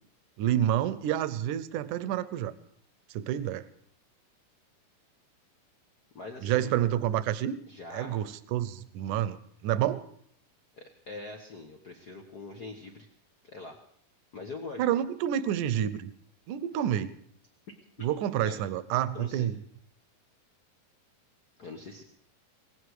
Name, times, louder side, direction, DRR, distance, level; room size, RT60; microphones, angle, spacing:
voice 1, 0.4-2.5 3.1-3.6 6.4-7.6 7.9-9.4 9.6-10.0 14.8-16.1 16.5-17.1 18.0-19.5, right 11 dB, 75° right, 15 dB, 2.1 m, -28 dB
voice 2, 6.1-6.7 7.7-8.2 10.8-13.1 13.4-13.8 14.3-14.8 18.0-18.1 18.4-18.6 19.1-19.5 21.6-22.0, left 3 dB, 85° left, 3 dB, 0.8 m, -42 dB
18.5 x 16.0 x 4.8 m, 0.64 s
omnidirectional pair, 3.8 m